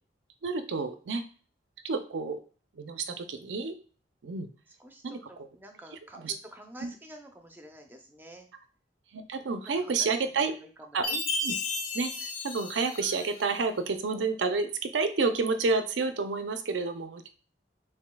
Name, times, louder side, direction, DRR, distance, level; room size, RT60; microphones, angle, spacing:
voice 1, 0.4-1.2 1.8-2.4 2.8-3.8 4.2-4.5 5.0-5.2 6.1-6.3 6.8-6.9 9.1-10.5 10.9-11.6 11.9-17.3, right 4 dB, 80° right, 8 dB, 0.5 m, -30 dB
voice 2, 4.8-8.5 9.6-11.0, equal, 10° right, 4 dB, 0.5 m, -49 dB
Chime, 11.0-13.5, left 2 dB, 50° left, 0.9 m, -33 dB
7.1 x 2.7 x 2.2 m, 0.40 s
head